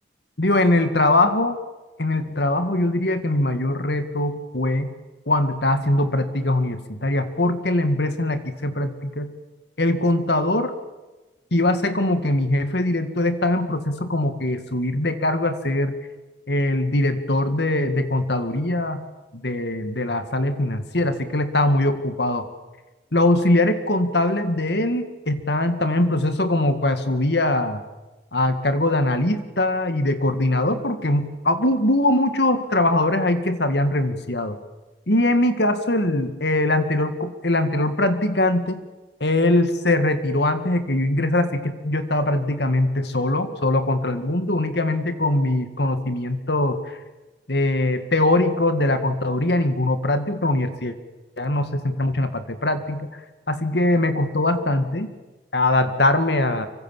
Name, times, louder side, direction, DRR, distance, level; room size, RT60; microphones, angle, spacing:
voice 1, 0.4-1.6 2.0-4.9 5.3-9.3 9.8-10.7 11.5-16.0 16.5-19.0 19.3-22.5 23.1-27.8 28.3-34.6 35.1-38.8 39.2-46.8 47.5-51.0 51.4-53.1 53.5-55.1 55.5-56.7, left 1 dB, 70° left, 9 dB, 2.0 m, -22 dB
25.0 x 24.0 x 7.5 m, 1.2 s
head